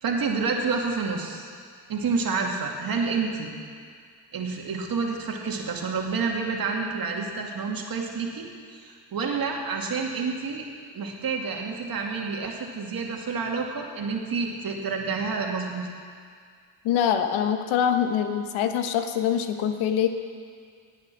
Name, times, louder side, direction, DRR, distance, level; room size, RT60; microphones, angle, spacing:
voice 1, 0.0-1.4 1.9-3.5 4.3-10.7 10.9-15.9, right 4 dB, 45° right, 1 dB, 2.5 m, -29 dB
voice 2, 16.8-20.1, left 9 dB, 80° left, 7 dB, 1.2 m, -24 dB
19.0 x 8.5 x 6.1 m, 2.1 s
supercardioid pair, 75°, 47 cm